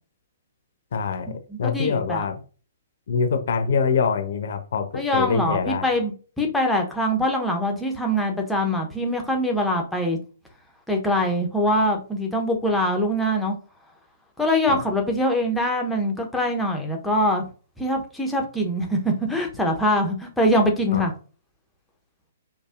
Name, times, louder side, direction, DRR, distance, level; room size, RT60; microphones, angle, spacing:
voice 1, 0.9-2.4 3.1-5.9 14.7-14.8 20.9-21.0, left 5 dB, 55° left, 7 dB, 0.6 m, -24 dB
voice 2, 1.5-2.3 4.9-10.2 10.9-13.5 14.4-17.4 17.8-21.1, equal, 5° left, 1 dB, 0.7 m, -23 dB
4.1 x 2.7 x 2.4 m, 0.37 s
figure-of-eight pair, 120°, 0 cm